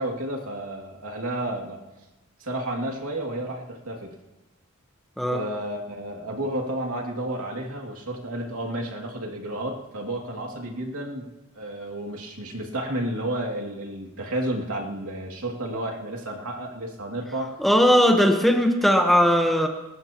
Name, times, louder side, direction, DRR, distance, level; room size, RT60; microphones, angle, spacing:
voice 1, 0.0-1.8 2.4-4.1 5.3-11.3 11.5-17.5, right 1 dB, 80° right, 0 dB, 2.5 m, -31 dB
voice 2, 17.6-19.7, equal, ahead, 3 dB, 1.1 m, -18 dB
29.0 x 14.5 x 3.0 m, 1.1 s
head